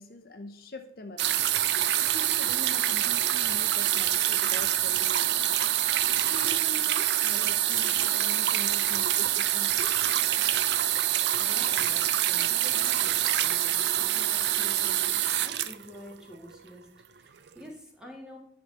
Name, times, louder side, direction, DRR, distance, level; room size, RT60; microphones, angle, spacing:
voice 1, 0.0-5.6 6.1-10.1, left 1 dB, 55° left, 6 dB, 0.8 m, -44 dB
sound 1, 1.2-16.6 17.5-17.6, right 12 dB, 75° right, 0.5 m, -26 dB
voice 2, 11.1-13.2 13.4-18.4, equal, 5° right, 0 dB, 1.8 m, -48 dB
10.5 x 3.9 x 6.7 m, 0.67 s
head